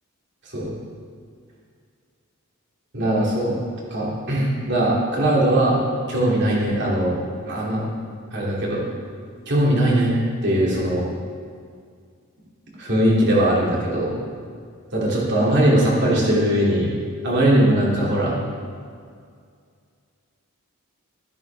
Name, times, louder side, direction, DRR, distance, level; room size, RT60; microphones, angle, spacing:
voice 1, 2.9-3.6 3.9-5.8 6.1-7.2 7.5-7.8 8.3-8.8 9.5-10.1 10.4-11.0 12.8-14.2 14.9-16.9 17.2-18.3, right 1 dB, 50° right, -5 dB, 2.9 m, -20 dB
13.5 x 10.5 x 3.5 m, 2.2 s
head